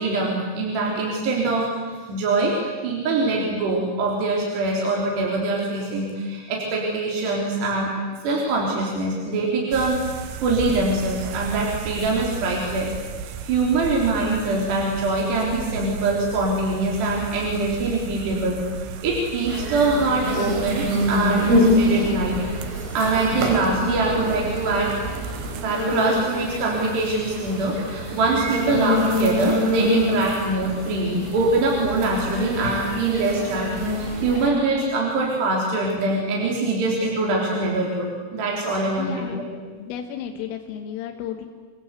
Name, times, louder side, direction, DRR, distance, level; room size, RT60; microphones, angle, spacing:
voice 1, 0.0-1.7 2.1-2.6 2.8-7.9 8.2-12.9 13.2-22.4 22.7-25.0 25.5-39.4, right 2 dB, 60° right, -2 dB, 5.6 m, -23 dB
sound 1, 9.7-25.7, right 5 dB, 75° right, 3.3 m, -35 dB
sound 2, 19.5-34.5, left 1 dB, 90° right, 7.0 m, -26 dB
voice 2, 23.6-24.4 39.0-39.5 39.8-41.5, left 9 dB, 90° left, 5 dB, 3.9 m, -34 dB
29.0 x 21.5 x 8.3 m, 1.5 s
omnidirectional pair, 5.7 m